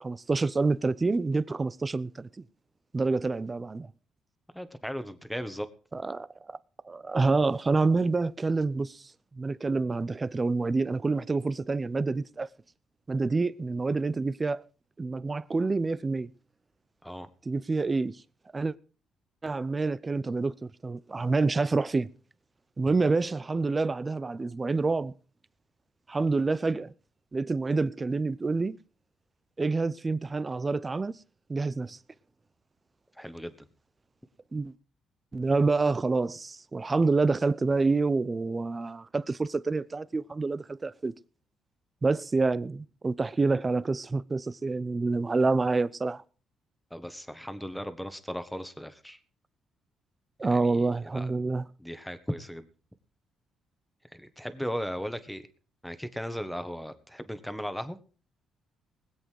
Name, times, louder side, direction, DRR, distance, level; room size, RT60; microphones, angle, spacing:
voice 1, 0.0-2.3 2.9-3.9 5.9-6.6 6.9-9.0 9.3-12.5 13.1-14.6 15.0-16.3 17.5-18.2 18.5-18.7 19.4-22.1 22.8-25.1 26.1-26.9 27.3-28.8 29.6-31.2 31.5-32.0 34.5-34.7 35.3-41.1 42.0-46.2 50.4-51.7, right 3 dB, 25° right, 0.6 m, -27 dB
voice 2, 4.5-5.7 17.0-17.3 33.2-33.7 46.9-49.2 50.4-50.9 51.1-51.3 51.8-52.7 54.1-55.4 55.8-58.0, equal, ahead, 1.5 m, -37 dB
20.0 x 8.1 x 4.7 m
cardioid pair, 90°, 0 cm